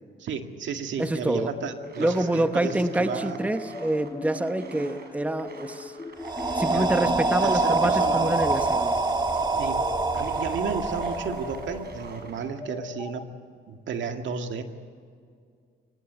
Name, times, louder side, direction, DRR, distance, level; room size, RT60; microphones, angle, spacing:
voice 1, 0.2-3.4 6.7-8.4 9.6-9.9 10.1-13.3 13.7-14.6, right 6 dB, 70° right, 5 dB, 2.1 m, -33 dB
voice 2, 1.0-1.5 2.0-5.9 6.6-8.9, right 1 dB, 5° right, 8 dB, 1.1 m, -26 dB
sound 1, 1.4-13.2, left 2 dB, 25° left, 2.1 m, -38 dB
sound 2, 1.8-7.0 7.3-12.5, right 4 dB, 55° right, 5.8 m, -49 dB
sound 3, 6.2-12.1, right 3 dB, 20° right, 2.0 m, -26 dB
24.0 x 19.5 x 8.2 m, 2.2 s
cardioid pair, 90°, 20 cm